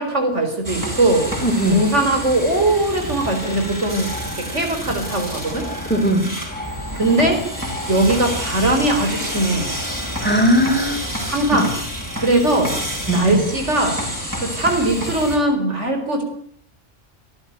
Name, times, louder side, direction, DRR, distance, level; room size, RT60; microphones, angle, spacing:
voice 1, 0.0-1.3 1.7-5.7 7.0-7.4 7.9-9.7 11.3-11.7 12.2-12.7 13.1-14.0 14.4-16.2, right 2 dB, 70° right, 5 dB, 5.0 m, -20 dB
sound 1, 0.6-15.4, equal, 15° right, 7.9 m, -28 dB
voice 2, 1.4-1.8 5.9-6.3 10.2-11.0 11.5-11.6 13.1-13.2, equal, 10° left, 3 dB, 4.7 m, -18 dB
26.5 x 15.0 x 9.1 m, 0.66 s
omnidirectional pair, 1.3 m